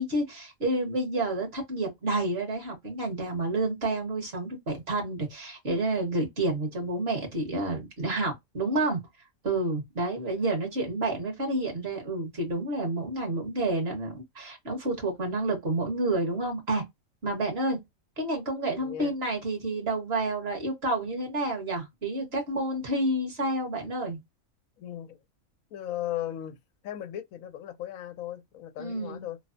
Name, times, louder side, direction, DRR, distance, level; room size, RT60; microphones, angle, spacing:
voice 1, 0.0-9.0 9.4-16.8 17.2-17.8 18.2-24.2 28.8-29.2, right 2 dB, 50° right, 1.4 m, -29 dB
voice 2, 18.8-19.1 24.8-25.2 25.7-26.6 26.8-29.4, left 12 dB, 80° left, 1.0 m, -36 dB
3.2 x 2.0 x 2.5 m
omnidirectional pair, 1.4 m